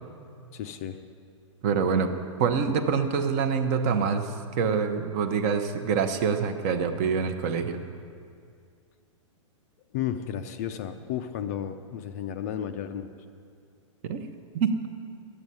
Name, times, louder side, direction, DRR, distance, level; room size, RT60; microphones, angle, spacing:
voice 1, 0.5-1.0 9.9-13.1, left 9 dB, 30° left, 8 dB, 0.5 m, -33 dB
voice 2, 1.6-2.1 2.4-7.8 14.0-14.2 14.5-14.7, right 6 dB, 30° right, 7 dB, 0.8 m, -25 dB
12.5 x 8.8 x 9.4 m, 2.2 s
hypercardioid pair, 170°, 16 cm